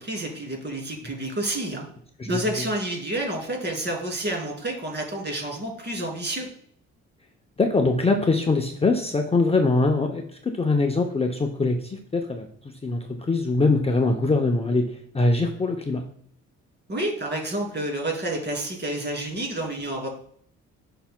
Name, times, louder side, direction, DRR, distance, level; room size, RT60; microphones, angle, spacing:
voice 1, 0.0-1.8 2.3-6.5 16.9-20.1, right 1 dB, 35° right, 0 dB, 2.6 m, -29 dB
voice 2, 7.6-12.5 12.8-13.0 13.3-14.9 15.1-16.0, left 3 dB, 20° left, 3 dB, 0.6 m, -22 dB
10.0 x 5.8 x 2.2 m, 0.62 s
cardioid pair, 90°, 30 cm